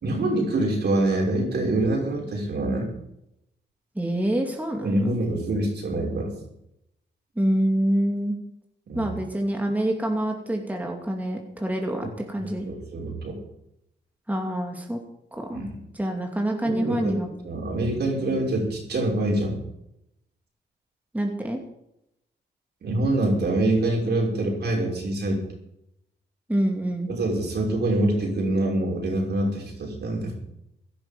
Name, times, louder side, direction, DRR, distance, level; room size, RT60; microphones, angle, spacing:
voice 1, 0.0-2.9 4.8-6.4 8.9-9.1 12.4-13.4 15.5-15.8 16.6-17.2 17.4-19.6 22.8-25.4 27.1-30.3, right 1 dB, 65° right, -1 dB, 5.9 m, -25 dB
voice 2, 4.0-5.2 7.4-8.4 8.9-12.7 14.3-15.0 15.3-15.6 15.9-17.3 21.1-21.6 26.5-27.1, right 1 dB, 10° right, 2 dB, 2.6 m, -26 dB
16.5 x 11.0 x 5.4 m, 0.81 s
cardioid pair, 80°, 18 cm